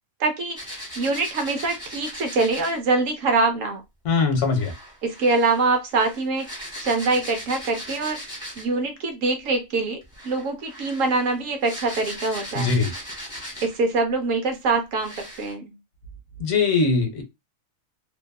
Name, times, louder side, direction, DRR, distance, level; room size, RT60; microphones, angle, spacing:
voice 1, 0.2-0.6 1.0-3.8 5.0-6.5 6.8-8.2 8.6-12.7 13.6-15.8, right 3 dB, 70° right, 1.0 m, -24 dB
sound 1, 0.5-2.8 4.5-8.8 10.0-13.9 14.5-14.6 15.0-15.5, equal, 5° right, 0.8 m, -38 dB
voice 2, 4.0-4.7 12.5-12.9 16.4-17.2, left 4 dB, 70° left, 0.9 m, -21 dB
2.6 x 2.3 x 2.2 m
omnidirectional pair, 1.4 m